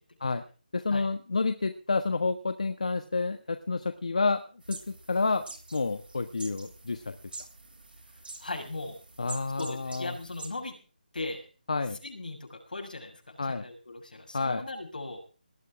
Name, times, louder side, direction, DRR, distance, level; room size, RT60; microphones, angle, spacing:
voice 1, 0.7-4.4 4.7-5.4 5.7-7.2 9.2-10.2 11.7-12.0 13.4-13.7 14.3-14.6, left 3 dB, 50° left, 9 dB, 1.4 m, -29 dB
sound 1, 4.6-10.5, right 3 dB, 85° right, 7.3 m, -46 dB
voice 2, 8.4-9.0 9.6-10.8 11.1-11.5 12.0-15.2, left 2 dB, 65° left, 3 dB, 6.7 m, -38 dB
19.5 x 12.0 x 4.8 m, 0.37 s
figure-of-eight pair, 180°, 5 cm